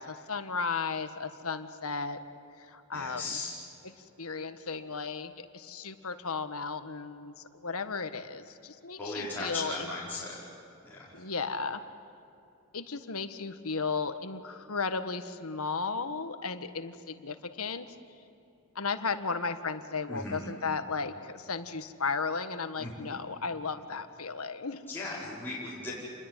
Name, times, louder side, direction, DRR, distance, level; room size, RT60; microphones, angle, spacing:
voice 1, 0.0-2.2 2.6-3.4 3.8-9.9 11.1-11.8 12.7-17.9 18.7-24.8, left 4 dB, 70° left, 9 dB, 1.6 m, -35 dB
voice 2, 2.9-3.5 9.0-10.4 10.8-11.1 20.1-20.4 22.8-22.9 24.9-25.9, left 2 dB, 10° left, -9 dB, 5.0 m, -37 dB
28.0 x 21.5 x 9.1 m, 2.8 s
head